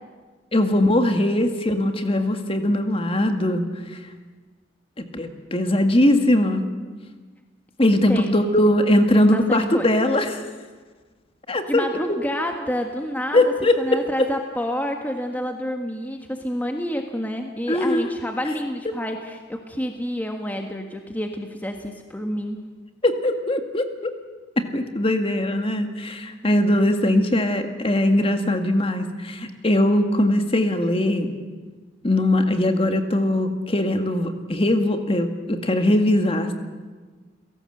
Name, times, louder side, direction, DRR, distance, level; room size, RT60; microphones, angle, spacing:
voice 1, 0.5-3.6 3.9-4.0 5.0-6.6 7.8-10.4 11.5-12.2 13.3-14.0 17.7-18.1 23.0-24.1 24.6-31.3 32.0-36.5, left 1 dB, 30° left, 6 dB, 1.9 m, -20 dB
voice 2, 9.1-9.9 11.7-22.6, equal, 10° left, 3 dB, 1.5 m, -28 dB
30.0 x 17.5 x 7.8 m, 1.4 s
head